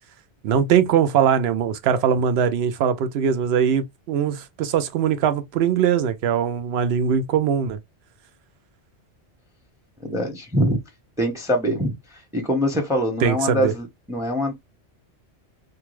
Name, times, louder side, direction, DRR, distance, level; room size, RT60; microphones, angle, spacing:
voice 1, 0.4-7.8 13.2-13.7, right 8 dB, 70° right, 0.8 m, -21 dB
voice 2, 10.0-10.8 11.2-12.0 12.3-14.5, equal, 5° right, 0.6 m, -23 dB
2.5 x 2.3 x 2.9 m
omnidirectional pair, 1.1 m